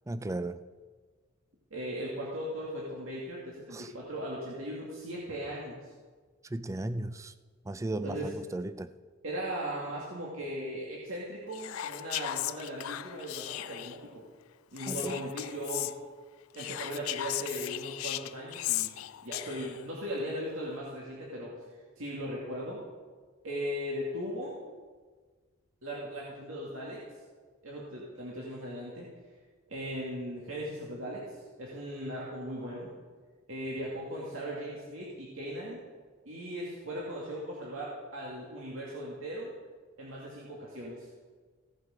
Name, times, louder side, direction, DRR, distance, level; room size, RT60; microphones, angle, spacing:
voice 1, 0.1-0.6 3.7-3.9 6.4-7.3 7.7-8.9 14.9-15.2, right 2 dB, 15° right, 13 dB, 0.4 m, -35 dB
voice 2, 1.7-5.8 8.0-8.3 9.2-14.2 14.7-15.9 16.5-18.9 19.2-21.5 22.0-22.8 23.4-24.6 25.8-27.0 27.6-29.1 29.7-32.9 33.5-35.8 36.3-39.5 40.0-41.1, equal, 75° right, -5 dB, 2.2 m, -38 dB
Whispering, 11.5-14.0 14.8-15.9 16.5-19.8, left 15 dB, 80° left, 0.3 m, -36 dB
16.0 x 7.8 x 5.0 m, 1.5 s
head